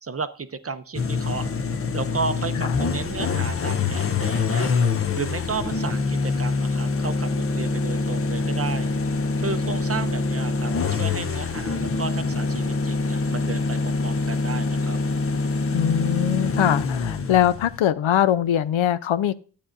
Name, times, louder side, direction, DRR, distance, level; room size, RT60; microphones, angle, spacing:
voice 1, 0.0-1.5 1.9-4.7 5.1-8.9 9.4-15.0, right 4 dB, 30° right, 0.5 m, -33 dB
sound 1, 0.9-17.8, left 4 dB, 30° left, 0.5 m, -25 dB
voice 2, 15.7-19.3, left 11 dB, 75° left, 0.6 m, -22 dB
12.0 x 8.5 x 2.5 m
wide cardioid pair, 115°, 48 cm